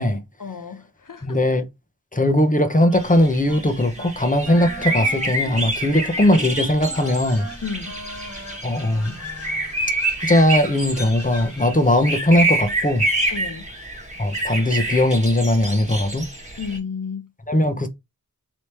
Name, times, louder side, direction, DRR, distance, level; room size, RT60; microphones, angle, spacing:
voice 1, 0.4-1.4 5.9-6.0 7.6-7.9 13.3-13.7 16.6-17.3, left 6 dB, 60° left, 0.8 m, -32 dB
voice 2, 1.2-1.7 2.1-7.5 8.6-9.2 10.2-13.1 14.2-16.3 17.5-17.9, left 1 dB, 20° left, 0.8 m, -19 dB
Wind instrument woodwind instrument, 2.5-3.6 3.9-4.2 4.4-9.7, equal, 45° right, 1.2 m, -39 dB
sound 1, 2.9-16.8, right 1 dB, 20° right, 1.4 m, -27 dB
sound 2, 6.9-12.1, left 3 dB, 40° left, 1.3 m, -44 dB
3.4 x 3.0 x 4.2 m
wide cardioid pair, 45°, 36 cm